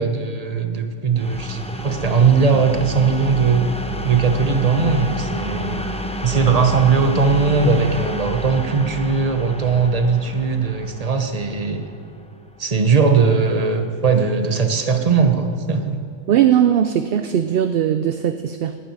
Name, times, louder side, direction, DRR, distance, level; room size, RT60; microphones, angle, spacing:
voice 1, 0.0-3.7 4.0-5.8 6.2-11.8 12.6-16.0, right 5 dB, 35° right, 6 dB, 1.1 m, -19 dB
sound 1, 1.2-12.8, equal, 10° left, 0.5 m, -30 dB
voice 2, 16.3-18.8, right 10 dB, 60° right, 9 dB, 0.7 m, -19 dB
11.0 x 8.9 x 9.0 m, 2.2 s
omnidirectional pair, 1.2 m